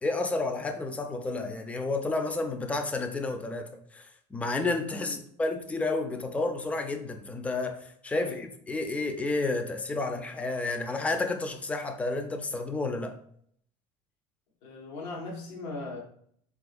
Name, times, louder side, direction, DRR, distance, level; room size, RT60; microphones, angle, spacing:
voice 1, 0.0-13.2, left 3 dB, 10° left, 6 dB, 0.4 m, -31 dB
voice 2, 14.6-16.0, left 3 dB, 80° left, -1 dB, 0.8 m, -39 dB
3.6 x 2.4 x 2.5 m, 0.64 s
supercardioid pair, 90°, 14 cm